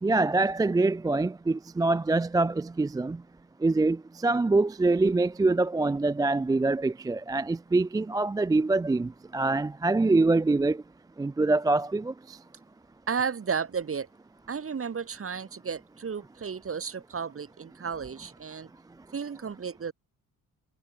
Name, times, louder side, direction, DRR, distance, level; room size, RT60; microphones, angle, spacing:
voice 1, 0.0-3.2 3.6-10.8 11.2-12.4, right 3 dB, 10° right, 0.3 m, -25 dB
voice 2, 13.1-14.1 14.5-18.7 19.1-19.9, right 6 dB, 35° right, 3.7 m, -33 dB
cardioid pair, 135°, 37 cm